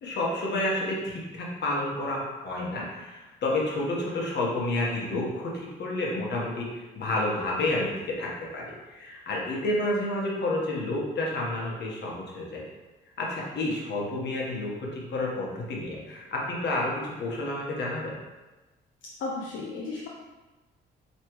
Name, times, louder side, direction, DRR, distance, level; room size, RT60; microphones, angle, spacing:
voice 1, 0.0-12.6 13.2-18.2, left 2 dB, 60° left, -3 dB, 1.3 m, -30 dB
voice 2, 19.2-20.1, left 3 dB, 75° left, -3 dB, 0.7 m, -34 dB
4.5 x 3.3 x 3.1 m, 1.1 s
cardioid pair, 90°, 20 cm